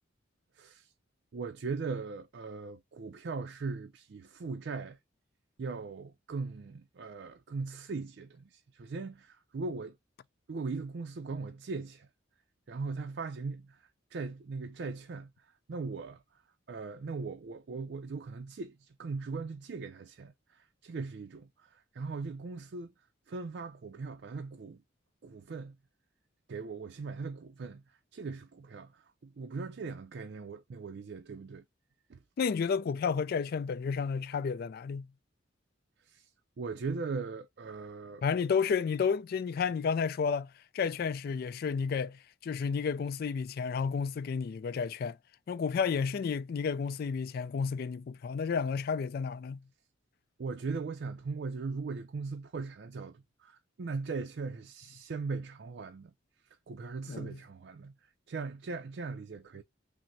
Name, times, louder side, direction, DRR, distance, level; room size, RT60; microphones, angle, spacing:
voice 1, 0.5-0.9 1.3-5.0 5.6-10.0 10.5-12.1 12.7-13.8 14.1-16.4 16.7-22.9 23.3-24.8 25.2-25.8 26.5-31.6 32.1-32.2 36.0-36.3 36.6-38.2 50.4-56.1 56.7-59.6, right 4 dB, 55° right, 0.4 m, -39 dB
voice 2, 32.4-35.1 38.2-45.2 45.5-49.6 57.1-57.4, left 6 dB, 50° left, 0.3 m, -31 dB
6.0 x 2.1 x 2.6 m
head